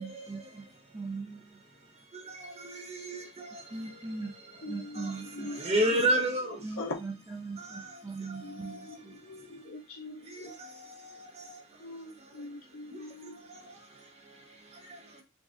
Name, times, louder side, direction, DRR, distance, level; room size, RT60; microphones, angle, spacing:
voice 1, 0.0-2.0 3.7-5.6 6.6-9.2 9.4-9.5, right 3 dB, 15° right, 0.3 m, -41 dB
voice 2, 2.1-3.5 5.0-5.1 5.5-6.6 7.6-7.9 8.6-8.8 10.3-11.3, right 1 dB, 30° right, 0.7 m, -31 dB
voice 3, 4.6-5.6 6.4-7.0 8.4-10.8 11.8-13.5, left 2 dB, 85° left, 0.5 m, -43 dB
3.4 x 3.1 x 2.5 m
head